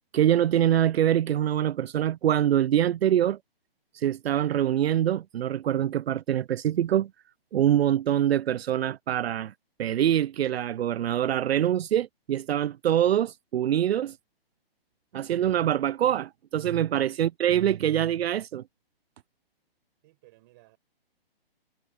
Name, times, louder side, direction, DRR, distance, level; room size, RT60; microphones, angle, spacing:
voice 1, 0.1-3.4 3.9-7.1 7.5-9.5 9.8-14.2 15.1-18.6, right 11 dB, 80° right, 0.5 m, -24 dB
voice 2, 20.0-20.8, right 20 dB, 20° right, 5.5 m, -57 dB
hypercardioid pair, 175°, 30 cm